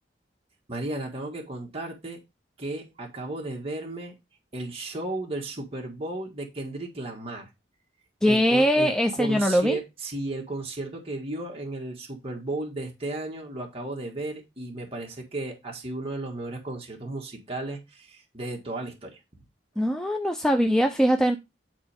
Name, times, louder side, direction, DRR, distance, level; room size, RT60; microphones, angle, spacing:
voice 1, 0.7-2.2 2.6-4.1 4.5-7.4 8.2-8.9 9.2-19.2, right 2 dB, 30° right, 1.7 m, -34 dB
voice 2, 8.2-9.8 19.8-21.4, equal, 5° left, 0.5 m, -22 dB
10.0 x 4.2 x 3.5 m
head